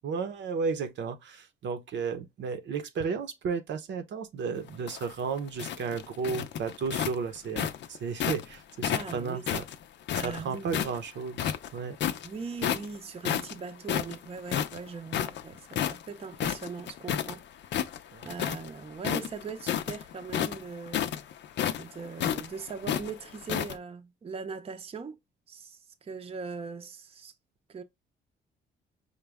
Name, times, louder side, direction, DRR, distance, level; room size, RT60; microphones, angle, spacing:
voice 1, 0.0-9.6 10.2-12.0 18.1-18.4, right 5 dB, 65° right, 0.7 m, -33 dB
sound 1, 4.7-8.5 8.8-11.0 11.3-12.3 12.6-13.0 13.2-17.3 17.6-18.7 19.0-23.7, left 10 dB, 65° left, 0.5 m, -31 dB
voice 2, 8.9-9.5 10.2-10.8 12.2-17.4 18.2-21.0 21.8-25.2 25.5-27.3 27.7-27.8, right 5 dB, 30° right, 0.6 m, -40 dB
5.1 x 2.2 x 3.4 m
cardioid pair, 90°, 20 cm